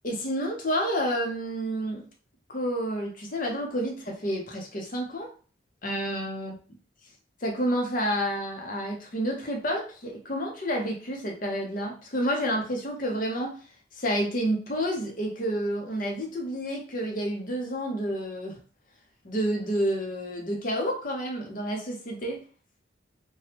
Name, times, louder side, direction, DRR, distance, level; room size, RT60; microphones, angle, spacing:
voice 1, 0.0-2.1 2.5-5.3 5.8-6.5 7.4-13.6 14.0-18.6 19.2-22.4, equal, 45° left, 1 dB, 0.7 m, -29 dB
2.9 x 2.2 x 3.3 m, 0.37 s
head